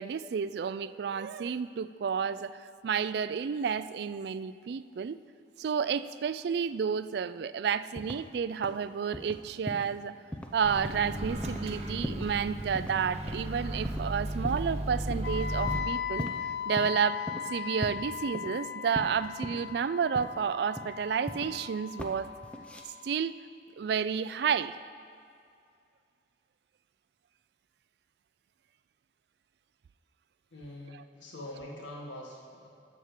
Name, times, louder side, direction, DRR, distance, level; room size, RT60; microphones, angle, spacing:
voice 1, 0.0-5.2 5.6-10.1 10.5-16.3 16.7-17.2 17.5-22.3 23.0-23.4 23.8-24.7, right 6 dB, 60° right, 15 dB, 0.3 m, -31 dB
sound 1, 8.0-8.3 8.6-8.9 9.1-9.4 9.7-10.0 10.3-10.5 10.8-11.1 11.4-11.7 12.0-12.4 12.7-13.0 13.3-13.4 13.8-14.1 14.4-14.8 15.1-15.3 15.7-16.4 16.8-16.9 17.3-17.5 17.8-18.7 19.0-19.7 20.2-20.4 20.8-21.6 22.0-22.2 22.4-22.8, equal, 5° left, 0.6 m, -39 dB
Microwave oven, 10.6-15.8, right 1 dB, 35° right, 0.8 m, -35 dB
Wind instrument woodwind instrument, 15.2-23.2, left 8 dB, 65° left, 0.4 m, -38 dB
voice 2, 30.5-32.7, left 1 dB, 85° left, -2 dB, 1.7 m, -44 dB
12.5 x 4.8 x 7.5 m, 2.4 s
head